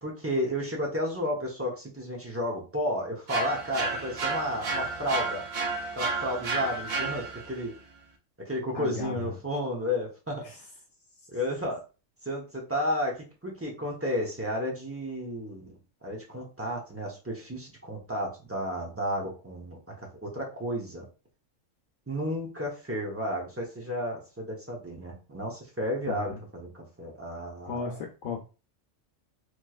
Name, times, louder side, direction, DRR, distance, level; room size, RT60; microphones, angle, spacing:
voice 1, 0.0-5.4 5.9-7.7 8.4-10.5 11.3-11.8 12.2-21.0 22.1-27.9, equal, 15° right, -2 dB, 0.7 m, -32 dB
sound 1, 3.3-7.6, right 4 dB, 50° right, 0.6 m, -31 dB
voice 2, 8.7-9.4 10.4-10.6 26.1-26.4 27.6-28.4, left 6 dB, 75° left, 0 dB, 1.0 m, -35 dB
3.1 x 2.9 x 2.4 m, 0.32 s
omnidirectional pair, 1.3 m